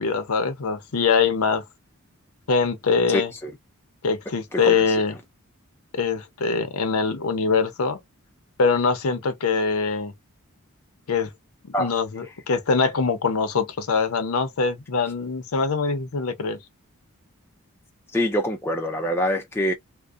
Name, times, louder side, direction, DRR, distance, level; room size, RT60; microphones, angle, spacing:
voice 1, 0.0-1.6 2.5-3.3 4.0-5.1 5.9-8.0 8.6-10.1 11.1-11.3 11.6-16.6, left 5 dB, 80° left, 0.6 m, -23 dB
voice 2, 3.1-3.5 4.5-5.0 11.7-11.9 18.1-19.7, equal, 10° left, 0.4 m, -25 dB
2.5 x 2.1 x 2.3 m
head